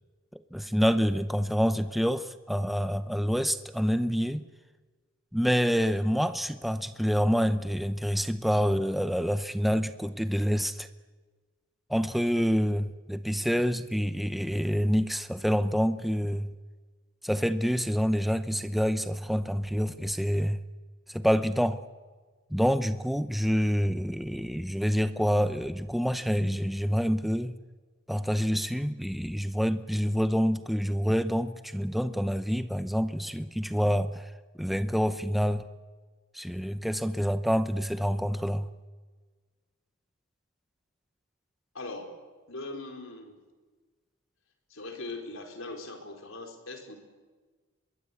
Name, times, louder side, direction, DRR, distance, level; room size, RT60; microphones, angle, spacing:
voice 1, 0.5-4.4 5.3-10.9 11.9-16.5 17.2-20.6 21.1-21.8 22.5-27.6 28.1-34.3 34.6-35.6 36.3-38.7, equal, ahead, 10 dB, 0.7 m, -27 dB
voice 2, 41.7-42.1 42.5-43.4 44.7-47.0, left 2 dB, 70° left, 4 dB, 4.6 m, -40 dB
25.0 x 22.5 x 8.6 m, 1.4 s
head